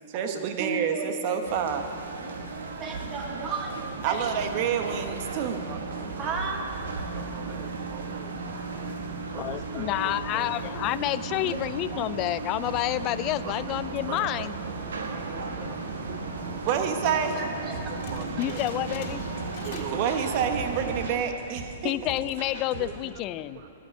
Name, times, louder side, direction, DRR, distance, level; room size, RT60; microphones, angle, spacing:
voice 1, 0.1-1.9 4.0-6.2 7.1-8.5 9.3-10.5 10.9-11.0 13.4-13.8 14.1-15.8 16.1-18.6 19.6-21.9 22.8-23.0 23.5-23.7, right 7 dB, 45° right, 6 dB, 1.2 m, -31 dB
voice 2, 0.6-1.2 2.8-4.3 6.2-6.6 11.2-11.7 11.9-12.0 15.6-15.7 16.1-16.2 17.1-18.0 19.7-19.8 23.0-23.1, right 4 dB, 30° right, 1 dB, 1.9 m, -35 dB
sound 1, 1.4-21.1, right 3 dB, 85° right, 1.3 m, -35 dB
voice 3, 9.3-14.6 18.4-19.3 21.8-23.6, left 15 dB, 35° left, 16 dB, 0.3 m, -29 dB
sound 2, 17.7-23.0, right 4 dB, 65° right, 2.0 m, -41 dB
sound 3, 18.0-20.1 20.3-20.7 21.2-21.3 21.9-22.3, left 5 dB, 50° left, 1.9 m, -45 dB
14.0 x 5.9 x 9.8 m, 3.0 s
hypercardioid pair, 135°, 0 cm